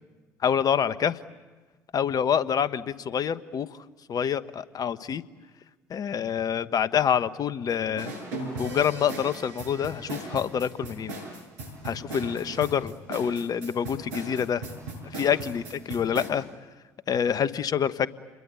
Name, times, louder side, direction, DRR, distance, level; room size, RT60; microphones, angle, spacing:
voice 1, 0.4-1.2 1.9-3.7 4.1-5.2 5.9-8.1 8.6-11.1 11.8-14.6 15.1-16.4 17.1-18.1, left 8 dB, 50° left, 14 dB, 1.2 m, -26 dB
sound 1, 8.0-16.3, right 2 dB, 85° right, 6.3 m, -38 dB
29.0 x 22.0 x 8.3 m, 1.3 s
hypercardioid pair, 60°, 8 cm